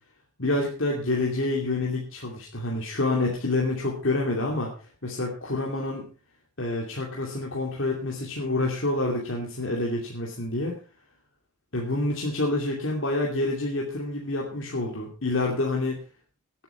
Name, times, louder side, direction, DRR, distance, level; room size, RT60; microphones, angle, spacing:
voice 1, 0.4-4.7 5.0-6.1 6.6-10.8 11.7-16.0, left 2 dB, 65° left, -2 dB, 2.7 m, -27 dB
18.0 x 9.1 x 4.5 m, 0.34 s
head